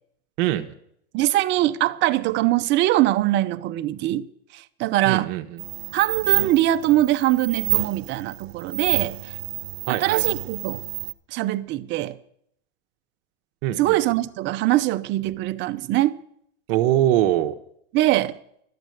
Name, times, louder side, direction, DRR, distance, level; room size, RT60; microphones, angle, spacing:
voice 1, 0.4-0.7 5.0-5.6 9.9-10.2 13.6-14.0 16.7-17.5, right 13 dB, 55° right, 1.0 m, -22 dB
voice 2, 1.1-4.2 4.5-5.3 5.9-9.2 9.9-10.8 11.3-12.2 13.8-16.2 17.9-18.3, right 15 dB, 35° right, 0.7 m, -22 dB
sound 1, 5.6-11.1, right 17 dB, 75° right, 0.7 m, -28 dB
12.5 x 8.1 x 9.2 m
supercardioid pair, 135°, 32 cm